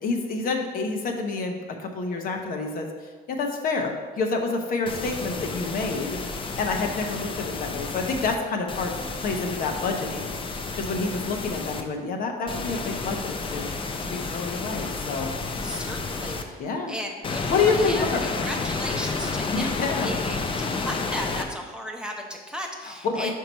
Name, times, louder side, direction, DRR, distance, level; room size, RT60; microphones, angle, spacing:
voice 1, 0.0-2.9 3.3-6.2 6.6-8.9 9.2-13.8 14.0-15.3 15.7-15.8 16.6-16.9 17.5-18.2 19.5-20.1 22.8-23.3, left 4 dB, 60° left, 3 dB, 1.0 m, -28 dB
sound 1, 4.9-8.3 8.7-11.8 12.5-16.4 17.2-21.5, left 3 dB, 30° left, 0.7 m, -31 dB
voice 2, 15.6-19.8 20.0-23.3, equal, 5° right, 1 dB, 0.8 m, -36 dB
5.7 x 4.6 x 5.4 m, 1.5 s
cardioid pair, 110°, 17 cm